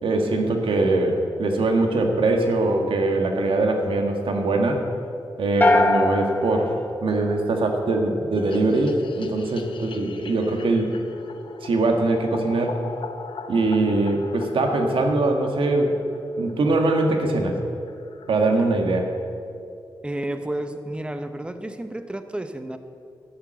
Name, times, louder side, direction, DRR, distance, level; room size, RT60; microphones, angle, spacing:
voice 1, 0.0-4.9 5.4-10.9 11.6-12.8 13.5-16.0 16.4-17.6 18.3-19.1, right 2 dB, 85° right, 3 dB, 1.6 m, -22 dB
sound 1, 5.6-7.9, left 2 dB, 20° left, 0.8 m, -22 dB
sound 2, 8.3-16.6 16.8-16.9 17.2-17.3 17.5-17.6 17.8-18.4, left 5 dB, 80° left, 0.8 m, -39 dB
voice 2, 20.0-22.8, right 1 dB, 10° right, 9 dB, 0.8 m, -31 dB
13.5 x 7.3 x 7.6 m, 2.5 s
wide cardioid pair, 110°, 9 cm